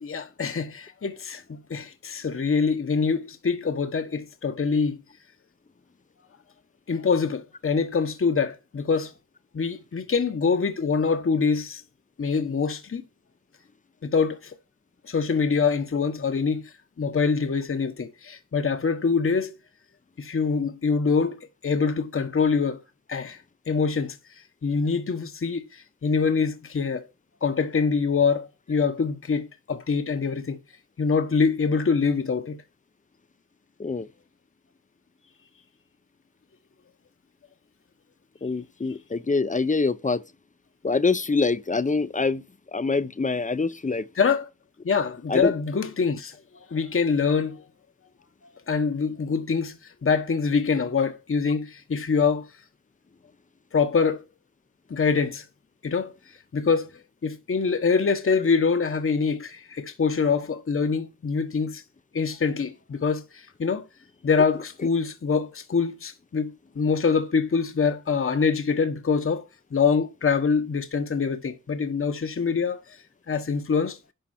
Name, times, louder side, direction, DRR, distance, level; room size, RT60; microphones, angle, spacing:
voice 1, 0.0-5.0 6.9-9.1 9.5-11.8 12.2-13.0 14.0-14.6 15.0-19.5 20.2-22.8 23.1-27.1 27.4-30.6 31.0-32.6 44.2-44.5 44.8-47.7 48.7-52.5 53.7-54.2 54.9-55.5 55.8-61.8 62.1-63.8 64.2-69.4 69.7-74.1, left 5 dB, 45° left, 1.2 m, -25 dB
voice 2, 38.4-40.2 40.8-42.4 42.7-44.1 45.3-45.5, left 4 dB, 25° left, 0.8 m, -25 dB
11.5 x 6.8 x 4.4 m
wide cardioid pair, 105°, 31 cm